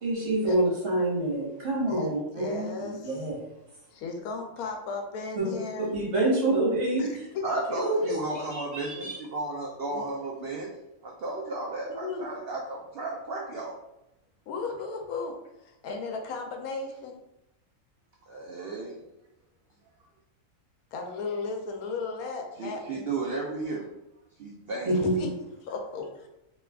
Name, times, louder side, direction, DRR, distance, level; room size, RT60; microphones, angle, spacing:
voice 1, 0.0-3.4 5.4-5.5 5.9-7.1 7.5-9.2 24.9-25.3, right 1 dB, 55° right, -4 dB, 1.3 m, -27 dB
voice 2, 1.9-3.2 3.9-5.9 7.0-7.8 9.9-10.1 11.9-12.3 14.5-17.2 20.9-23.1 24.9-25.3 25.6-26.3, left 4 dB, 85° left, 3 dB, 1.1 m, -36 dB
voice 3, 7.4-10.7 11.0-13.7 18.3-19.0 22.6-23.8 24.4-24.9, right 3 dB, 75° right, -1 dB, 0.5 m, -34 dB
2.9 x 2.3 x 3.4 m, 0.88 s
omnidirectional pair, 1.5 m